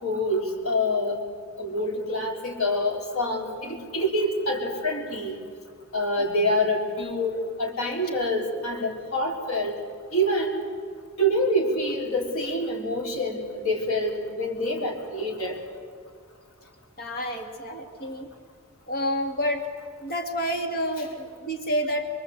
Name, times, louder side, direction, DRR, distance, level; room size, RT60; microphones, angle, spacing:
voice 1, 0.0-1.2 1.6-5.4 5.9-9.8 10.1-10.6 11.2-15.6, equal, 85° left, 0 dB, 4.4 m, -26 dB
voice 2, 17.0-18.3 18.9-19.7 20.0-22.1, equal, 45° left, 4 dB, 2.4 m, -29 dB
26.0 x 23.0 x 8.0 m, 2.1 s
head